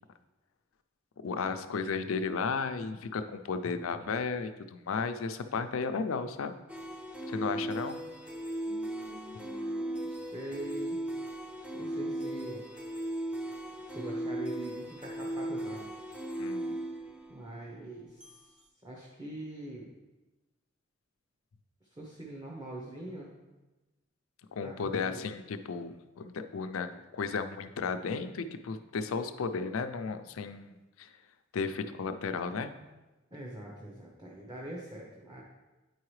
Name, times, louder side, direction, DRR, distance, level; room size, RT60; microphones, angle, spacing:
voice 1, 1.2-6.6 7.3-8.0 16.4-16.8 24.5-31.1 31.5-32.7, left 5 dB, 85° left, 9 dB, 0.5 m, -34 dB
sound 1, 6.7-18.4, right 1 dB, 5° right, 0.5 m, -37 dB
voice 2, 8.7-11.0 11.7-12.6 13.9-15.9 17.3-18.4 18.8-19.9 21.9-23.3 24.6-25.2 33.3-35.4, right 1 dB, 20° right, -3 dB, 0.9 m, -43 dB
9.3 x 4.7 x 3.2 m, 1.1 s
head